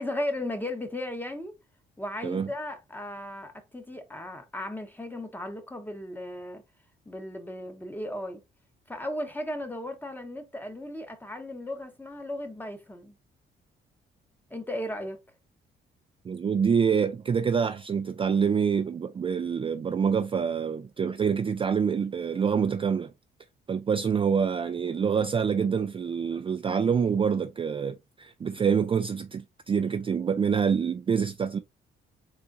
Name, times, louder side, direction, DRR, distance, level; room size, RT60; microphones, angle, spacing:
voice 1, 0.0-1.5 2.0-6.6 7.1-8.4 8.9-13.1 14.5-15.2, left 1 dB, 10° left, 1.0 m, -36 dB
voice 2, 16.2-23.1 23.7-31.6, right 6 dB, 25° right, 0.3 m, -26 dB
4.0 x 3.6 x 2.5 m
cardioid pair, 90°, 20 cm